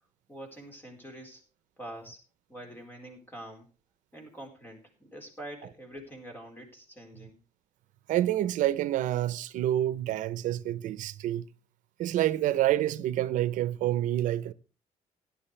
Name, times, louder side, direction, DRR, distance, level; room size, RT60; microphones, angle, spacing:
voice 1, 0.3-1.4 1.8-2.2 2.5-3.7 4.1-7.4, right 1 dB, 15° left, 4.4 m, -45 dB
voice 2, 8.1-11.5 12.0-14.5, right 13 dB, 85° right, 0.8 m, -28 dB
17.5 x 10.5 x 3.3 m
cardioid pair, 160°, 13 cm